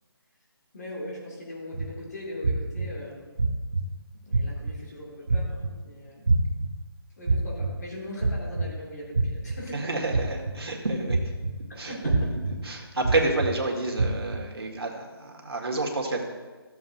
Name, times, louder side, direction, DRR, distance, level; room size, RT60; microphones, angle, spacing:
voice 1, 0.7-3.4 4.1-6.3 7.2-9.9 11.7-12.1, left 1 dB, 40° left, -4 dB, 2.5 m, -40 dB
sound 1, 1.7-1.8 2.4-2.9 3.4-3.8 4.3-4.7 5.3-5.7 6.3-6.7 7.2-7.7 8.2-8.6 9.1-9.5 10.1-10.5 11.1-11.5 12.1-12.5 13.0-13.5 14.0-14.4, right 3 dB, 35° right, 0.6 m, -24 dB
voice 2, 9.7-11.3 11.7-12.3 12.6-16.2, right 2 dB, 75° right, 0 dB, 1.9 m, -29 dB
15.0 x 7.2 x 2.7 m, 1.3 s
hypercardioid pair, 180°, 13 cm